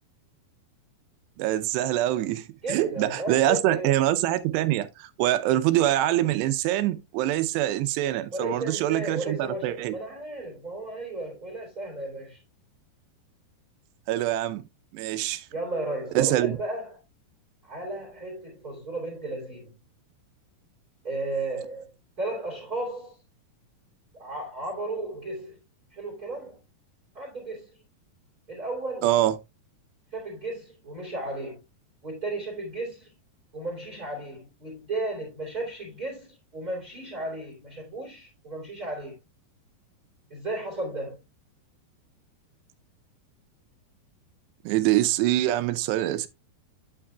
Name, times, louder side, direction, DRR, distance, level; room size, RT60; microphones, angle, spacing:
voice 1, 1.4-10.0 14.1-14.6 14.9-15.5 16.2-16.6 29.0-29.4 44.6-46.3, right 14 dB, 90° right, 2.9 m, -24 dB
voice 2, 2.6-3.9 8.3-12.4 15.5-17.0 17.6-19.7 21.0-21.9 22.2-23.2 24.1-25.6 25.9-26.6 27.1-27.8 28.5-29.1 30.1-31.6 32.0-33.1 33.5-39.1 40.3-41.2, right 2 dB, 25° right, 2.7 m, -34 dB
8.6 x 8.4 x 2.3 m
omnidirectional pair, 4.8 m